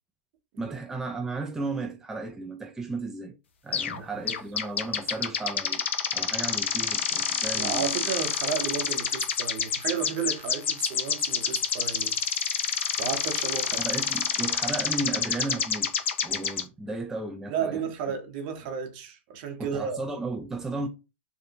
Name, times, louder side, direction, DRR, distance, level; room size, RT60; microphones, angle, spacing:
voice 1, 0.6-3.3 3.6-5.9 6.1-8.0 13.8-18.2 19.6-20.9, right 3 dB, 5° right, 0.3 m, -34 dB
sound 1, 3.7-4.0 4.3-16.6, left 7 dB, 75° left, 0.4 m, -28 dB
voice 2, 3.9-4.4 7.6-12.1 13.0-13.8 17.5-20.0, right 7 dB, 50° right, 0.8 m, -33 dB
2.6 x 2.0 x 2.8 m
hypercardioid pair, 110°, 7 cm